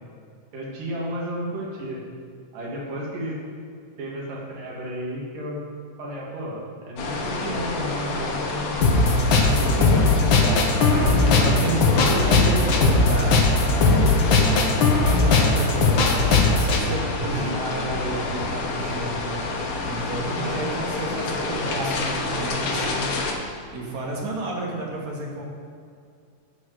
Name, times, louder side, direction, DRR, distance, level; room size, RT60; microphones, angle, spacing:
voice 1, 0.5-2.0 2.5-3.4 4.0-5.6 6.0-8.8 9.4-10.6 11.0-13.2 17.3-17.8 20.4-20.8 21.1-21.7, right 1 dB, 75° right, -4 dB, 4.3 m, -32 dB
sound 1, 7.0-23.3, left 3 dB, 55° left, 2.2 m, -29 dB
sound 2, 8.8-16.8, left 3 dB, 70° left, 1.1 m, -19 dB
voice 2, 9.3-9.9 10.7-19.4 19.8-23.0 23.7-25.4, right 1 dB, 60° right, -2 dB, 3.2 m, -30 dB
11.5 x 7.8 x 7.9 m, 2.3 s
omnidirectional pair, 3.9 m